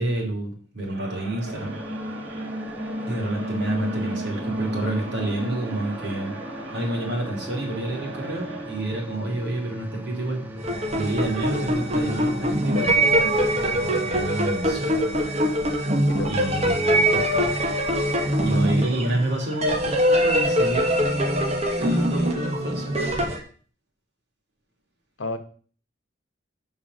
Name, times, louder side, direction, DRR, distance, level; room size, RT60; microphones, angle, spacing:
voice 1, 0.0-1.8 3.1-6.4 6.7-10.4 10.9-12.9 13.5-15.1 16.3-17.6 18.4-23.3, right 1 dB, 60° right, -1 dB, 2.8 m, -29 dB
Crowd, 0.8-8.9, right 3 dB, 85° right, 1.3 m, -41 dB
sound 1, 1.5-14.0, equal, 10° right, 0.6 m, -35 dB
sound 2, 10.6-23.4, equal, 35° right, 1.1 m, -23 dB
voice 2, 16.1-16.7 25.2-25.4, left 2 dB, 85° left, 8 dB, 1.0 m, -32 dB
5.6 x 5.6 x 6.2 m, 0.43 s
head